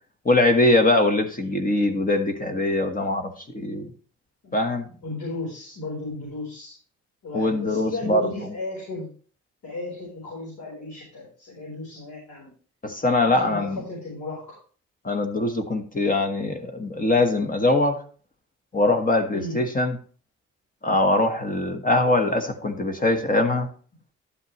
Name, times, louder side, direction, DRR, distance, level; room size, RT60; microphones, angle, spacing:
voice 1, 0.2-3.9 4.5-4.9 7.3-8.5 12.8-13.8 15.0-18.0 18.7-20.0 20.8-23.7, left 2 dB, 30° left, 6 dB, 1.4 m, -22 dB
voice 2, 5.0-6.7 7.2-9.1 9.6-12.5 13.2-14.4 19.3-19.6, left 2 dB, 75° left, -3 dB, 4.6 m, -35 dB
11.5 x 8.0 x 3.2 m, 0.42 s
cardioid pair, 90°, 30 cm